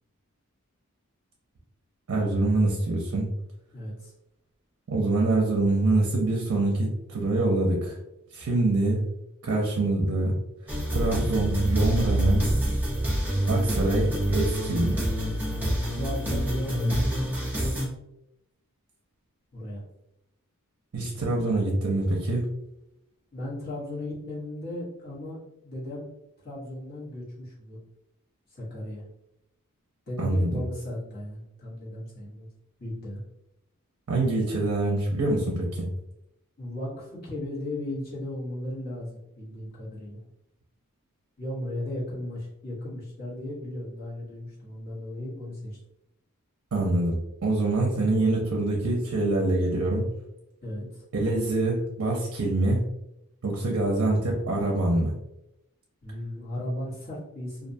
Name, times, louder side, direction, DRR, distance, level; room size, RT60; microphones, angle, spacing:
voice 1, 2.1-3.3 4.9-8.0 8.3-9.0 9.4-10.3 10.9-12.4 13.5-15.0 20.9-22.4 30.2-30.6 34.1-35.9 46.7-50.1 51.1-52.9 53.4-55.1, right 2 dB, 65° right, -1 dB, 0.5 m, -25 dB
voice 2, 3.7-4.1 15.9-17.1 19.5-19.8 23.3-25.4 25.6-27.8 28.5-29.0 30.1-32.5 32.8-33.2 36.6-40.2 41.4-45.8 50.6-51.0 56.0-57.7, left 1 dB, 45° left, -8 dB, 1.1 m, -35 dB
sound 1, 10.7-17.9, right 1 dB, 10° right, 0.6 m, -27 dB
2.5 x 2.2 x 2.6 m, 0.84 s
head